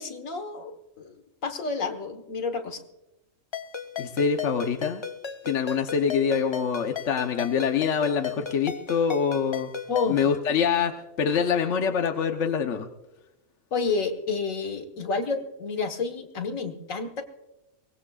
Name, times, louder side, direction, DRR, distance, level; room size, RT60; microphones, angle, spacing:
voice 1, 0.0-2.8 9.9-10.3 13.7-17.2, left 4 dB, 85° left, 6 dB, 1.8 m, -30 dB
Ringtone, 3.5-10.4, left 7 dB, 40° left, 0.4 m, -36 dB
voice 2, 4.0-5.0 5.4-9.7 10.1-12.9, left 6 dB, 70° left, 4 dB, 1.3 m, -25 dB
23.0 x 19.5 x 2.4 m, 0.92 s
omnidirectional pair, 1.3 m